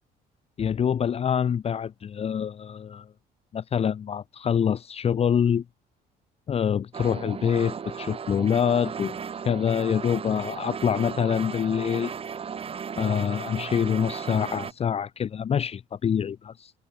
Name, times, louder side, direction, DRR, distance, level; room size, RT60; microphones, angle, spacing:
voice 1, 0.6-3.0 3.5-5.6 6.5-12.1 13.0-16.7, left 8 dB, 35° left, 0.8 m, -26 dB
sound 1, 6.9-14.7, right 7 dB, 35° right, 1.3 m, -35 dB
cardioid pair, 110°, 17 cm